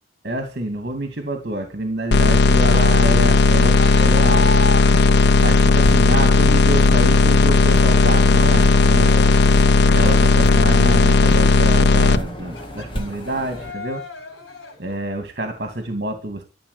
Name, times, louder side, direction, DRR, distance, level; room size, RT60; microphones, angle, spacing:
voice 1, 0.2-4.7 5.4-9.2 9.9-14.0 14.8-16.4, right 1 dB, 50° right, 6 dB, 2.6 m, -27 dB
sound 1, 2.1-12.2, left 3 dB, 60° left, 0.6 m, -14 dB
Cheering, 2.6-15.0, left 3 dB, 85° left, 5.9 m, -34 dB
sound 2, 5.0-13.7, equal, 25° left, 2.2 m, -33 dB
14.0 x 7.5 x 8.6 m, 0.34 s
head